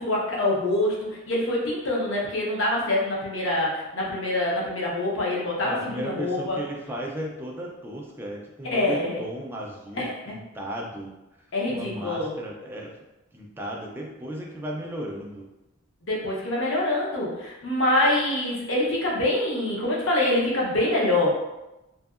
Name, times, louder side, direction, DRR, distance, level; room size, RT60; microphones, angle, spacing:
voice 1, 0.0-6.6 8.7-9.2 10.0-10.2 11.5-12.3 16.0-21.3, left 1 dB, 60° left, -4 dB, 0.7 m, -25 dB
voice 2, 5.6-11.1 11.7-12.9 13.3-15.5, right 1 dB, 10° right, -1 dB, 0.3 m, -35 dB
2.7 x 2.6 x 2.4 m, 0.97 s
head